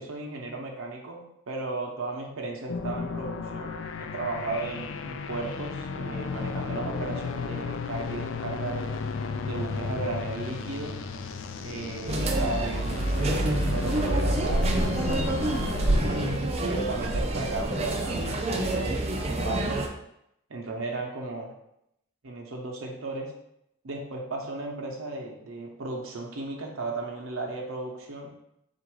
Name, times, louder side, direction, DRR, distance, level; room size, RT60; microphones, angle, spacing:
voice 1, 0.0-8.9 9.4-11.0 11.6-15.5 15.8-19.8 20.5-21.5 22.2-23.3 23.8-28.3, right 2 dB, 80° right, 0 dB, 0.7 m, -35 dB
sound 1, 2.7-16.4, left 5 dB, 65° left, 0.3 m, -34 dB
sound 2, 12.1-19.9, right 1 dB, 30° right, 0.4 m, -27 dB
3.9 x 2.5 x 4.6 m, 0.79 s
head